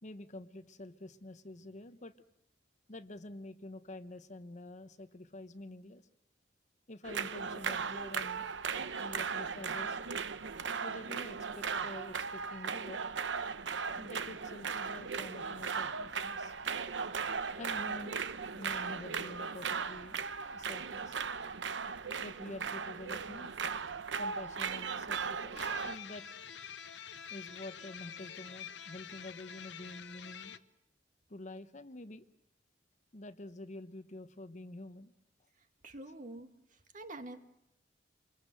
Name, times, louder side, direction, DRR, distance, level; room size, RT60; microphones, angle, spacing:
voice 1, 0.0-2.1 2.9-6.1 6.9-8.5 8.7-10.0 10.8-13.0 14.0-16.5 17.6-18.3 18.5-20.2 20.5-21.2 22.2-23.5 24.2-26.3 27.3-30.6 31.3-32.2 33.1-35.1, left 1 dB, 40° left, 11 dB, 1.0 m, -48 dB
sound 1, 7.0-26.0, right 5 dB, 85° right, 0.9 m, -37 dB
sound 2, 25.5-30.6, left 8 dB, 70° left, 0.9 m, -47 dB
voice 2, 35.8-36.5 36.9-37.4, right 2 dB, 45° right, 7 dB, 1.9 m, -45 dB
27.0 x 22.5 x 7.8 m, 0.82 s
head